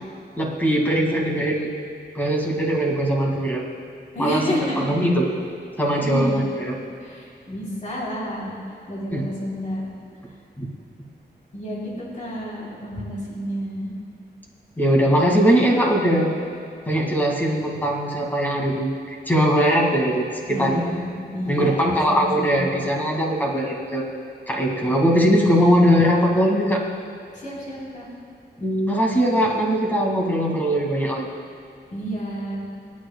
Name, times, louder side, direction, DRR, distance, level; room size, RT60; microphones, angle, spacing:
voice 1, 0.4-1.7 2.1-3.6 4.2-4.4 4.8-5.3 5.8-6.8 9.1-9.2 10.6-10.7 14.8-16.3 16.9-20.8 21.5-24.1 24.5-26.8 28.6-31.3, equal, 10° left, -2 dB, 2.1 m, -20 dB
voice 2, 4.1-5.0 5.9-6.4 7.0-8.5 8.9-9.8 11.5-13.9 20.5-22.7 27.3-28.0 31.9-32.6, equal, 45° left, -5 dB, 3.3 m, -29 dB
28.5 x 9.6 x 2.3 m, 2.5 s
wide cardioid pair, 170°, 18 cm